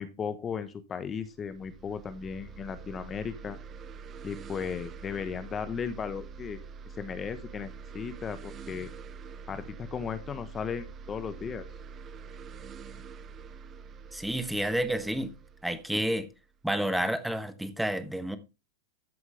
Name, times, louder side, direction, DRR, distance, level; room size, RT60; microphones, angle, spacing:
voice 1, 0.0-3.6 4.2-6.6 7.0-7.7 7.9-8.9 9.5-11.7, left 6 dB, 25° left, 1.1 m, -36 dB
sound 1, 1.3-16.7, right 5 dB, 25° right, 1.0 m, -45 dB
voice 2, 14.1-15.3 15.6-16.3 16.6-18.4, right 1 dB, 5° right, 1.2 m, -30 dB
13.0 x 7.8 x 3.4 m
hypercardioid pair, 115°, 0 cm